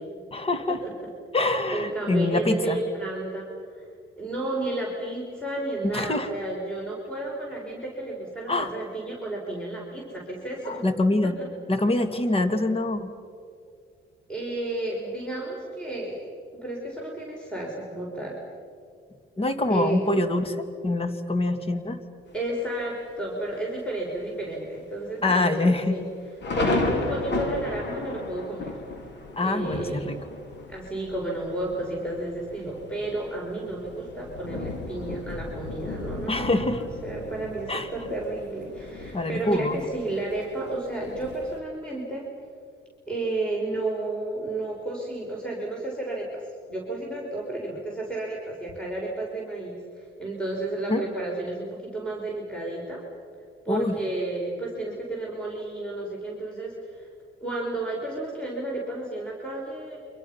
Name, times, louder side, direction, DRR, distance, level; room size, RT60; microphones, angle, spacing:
voice 1, 0.3-0.8 1.3-2.8 5.9-6.3 8.5-8.7 10.7-11.4 11.7-13.1 19.4-20.6 20.8-22.0 25.2-26.0 29.4-30.2 36.3-36.8 37.7-37.9 39.1-39.9 50.9-51.0 53.7-53.9, left 2 dB, 30° left, 8 dB, 2.3 m, -25 dB
voice 2, 1.7-3.5 3.7-3.9 4.2-10.8 11.2-11.3 14.3-16.3 16.6-18.4 19.7-20.0 22.3-26.0 26.5-28.8 29.4-30.0 30.7-42.3 43.1-53.0 53.6-57.1 57.4-60.0, right 2 dB, 5° left, -3 dB, 5.7 m, -32 dB
Thunder, 22.3-22.8 23.4-23.5 23.8-24.2 24.5-24.6 25.3-41.6, left 2 dB, 65° left, 3.4 m, -35 dB
30.0 x 25.5 x 5.9 m, 2.2 s
cardioid pair, 90°, 20 cm